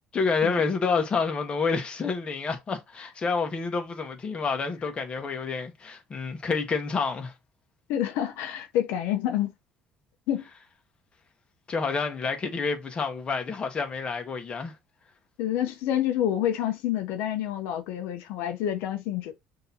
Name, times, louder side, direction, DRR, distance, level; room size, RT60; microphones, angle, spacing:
voice 1, 0.1-7.3 11.7-14.7, left 4 dB, 30° left, 1.2 m, -28 dB
voice 2, 7.9-9.5 10.3-10.4 15.4-19.3, left 11 dB, 85° left, 0.8 m, -28 dB
6.3 x 2.9 x 2.8 m
cardioid pair, 130°, 4 cm